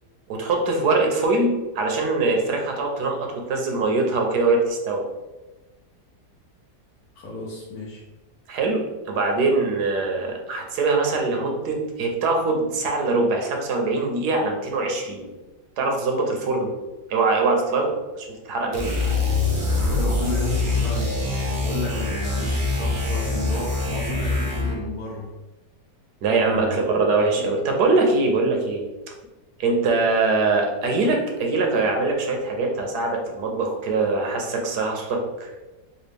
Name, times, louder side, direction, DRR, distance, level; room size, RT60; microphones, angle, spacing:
voice 1, 0.3-5.1 8.5-15.3 15.8-16.7 17.1-18.9 26.2-28.8 29.6-35.5, right 3 dB, 85° right, 2 dB, 1.3 m, -23 dB
voice 2, 7.2-8.0 19.0-19.1 19.7-25.3 26.4-27.0, left 2 dB, 70° left, -3 dB, 1.2 m, -33 dB
sound 1, 18.7-24.9, left 3 dB, 35° right, 0.5 m, -24 dB
4.1 x 2.4 x 3.3 m, 1.1 s
omnidirectional pair, 1.7 m